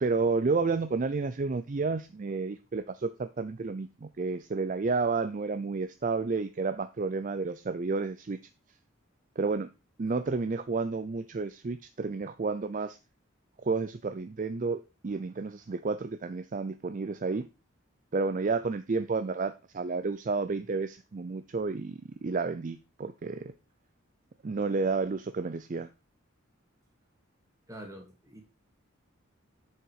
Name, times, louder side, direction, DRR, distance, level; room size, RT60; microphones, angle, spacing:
voice 1, 0.0-8.4 9.4-9.7 10.0-13.0 13.6-17.5 18.1-23.4 24.4-25.9, right 4 dB, 40° right, 0.4 m, -31 dB
voice 2, 27.7-28.4, right 1 dB, 15° right, 2.2 m, -45 dB
8.0 x 6.4 x 4.7 m
head